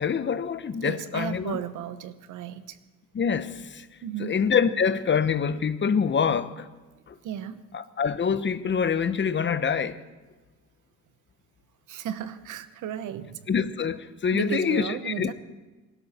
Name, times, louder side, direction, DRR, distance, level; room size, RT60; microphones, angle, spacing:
voice 1, 0.0-1.6 3.1-3.9 4.2-6.7 7.1-7.2 7.7-10.0 13.5-15.3, left 6 dB, 40° left, 1.0 m, -25 dB
voice 2, 0.8-2.8 4.0-4.4 7.2-7.6 11.9-13.5 14.3-15.3, right 9 dB, 85° right, 1.0 m, -34 dB
26.0 x 12.5 x 4.3 m
cardioid pair, 90°, 30 cm